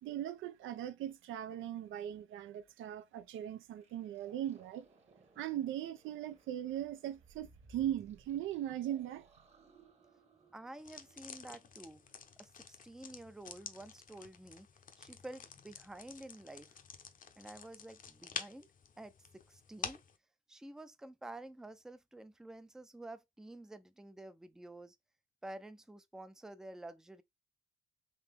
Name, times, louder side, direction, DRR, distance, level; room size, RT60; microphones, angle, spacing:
voice 1, 0.0-4.9 5.4-9.3, right 11 dB, 80° right, 0.5 m, -39 dB
sound 1, 3.8-12.3, right 3 dB, 30° right, 1.1 m, -64 dB
voice 2, 10.5-12.0 12.4-14.7 15.0-16.7 17.4-18.7 19.0-20.0 20.5-25.0 25.4-27.2, right 1 dB, 5° right, 0.4 m, -50 dB
sound 2, 10.8-20.2, left 7 dB, 45° left, 0.7 m, -49 dB
3.8 x 2.8 x 3.4 m
cardioid pair, 90°, 20 cm